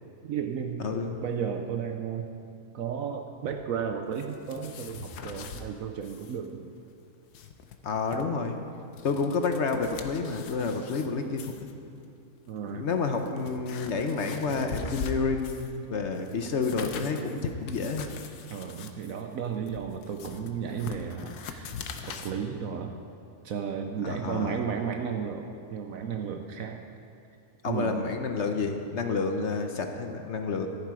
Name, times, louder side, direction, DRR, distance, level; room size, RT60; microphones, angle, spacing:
voice 1, 0.2-0.8 1.2-2.3 2.7-6.8 9.1-9.3 12.5-12.9 18.5-21.7 22.1-23.0 23.4-26.8 27.7-28.1, right 7 dB, 70° right, 4 dB, 1.1 m, -33 dB
voice 2, 0.8-1.2 7.8-8.6 9.0-11.7 12.7-18.1 24.0-24.6 27.6-30.7, left 4 dB, 55° left, 5 dB, 1.0 m, -29 dB
sound 1, 4.1-5.7 6.0-6.4 6.6-6.7 7.1-8.2 8.8-11.1 11.4-11.7 12.5-12.6 13.1-15.8 16.1-22.3, left 6 dB, 85° left, 1.3 m, -42 dB
13.5 x 10.5 x 4.8 m, 2.4 s
omnidirectional pair, 1.6 m